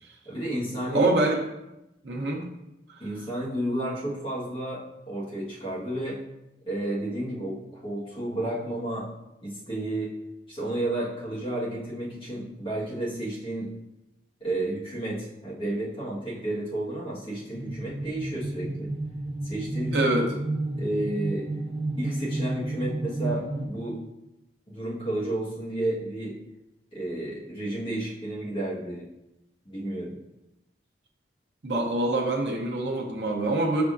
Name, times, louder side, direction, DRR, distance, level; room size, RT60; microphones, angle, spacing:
voice 1, 0.2-1.1 3.0-6.2 6.7-9.1 9.4-10.2 10.5-13.7 14.4-18.9 19.4-20.1 20.7-21.5 22.0-24.0 24.7-26.3 26.9-29.0 29.6-30.2, right 1 dB, 30° left, -8 dB, 1.4 m, -31 dB
voice 2, 0.9-1.4 2.0-2.4 19.9-20.3 31.6-33.8, right 2 dB, 75° right, 0 dB, 0.7 m, -25 dB
sound 1, 17.5-23.7, right 2 dB, 35° right, 0.8 m, -31 dB
5.8 x 3.5 x 2.5 m, 0.91 s
head